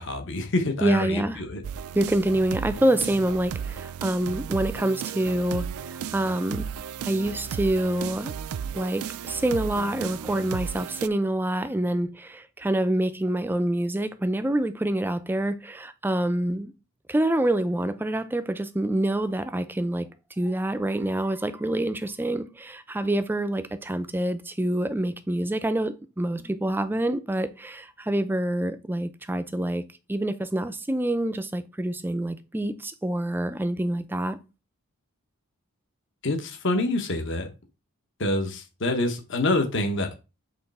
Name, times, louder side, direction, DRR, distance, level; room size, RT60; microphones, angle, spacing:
voice 1, 0.0-1.6 36.2-37.5 38.2-40.1, left 2 dB, 60° left, 1.0 m, -26 dB
voice 2, 0.8-1.4 1.9-6.7 7.0-8.3 8.7-16.7 17.1-20.1 20.4-29.8 30.1-34.4, right 1 dB, 10° right, 0.4 m, -26 dB
sound 1, 1.6-11.1, right 8 dB, 80° right, 0.4 m, -34 dB
7.9 x 3.1 x 4.1 m
head